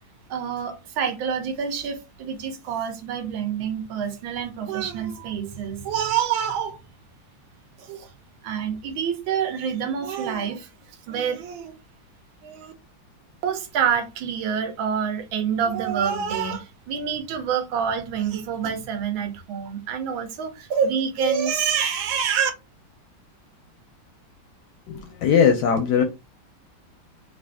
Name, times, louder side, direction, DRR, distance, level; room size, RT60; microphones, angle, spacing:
voice 1, 0.3-6.8 7.8-8.1 8.4-10.7 11.1-11.7 12.4-12.7 13.4-22.5, right 7 dB, 75° right, 1.5 m, -27 dB
voice 2, 24.9-26.0, left 7 dB, 70° left, 1.0 m, -19 dB
3.5 x 2.5 x 3.4 m
omnidirectional pair, 2.2 m